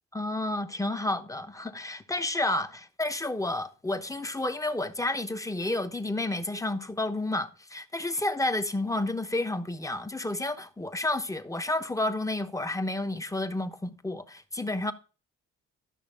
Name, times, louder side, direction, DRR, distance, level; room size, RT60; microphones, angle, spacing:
voice 1, 0.1-14.9, left 2 dB, 10° left, 1.0 m, -30 dB
12.5 x 6.3 x 3.6 m
cardioid pair, 90°, 30 cm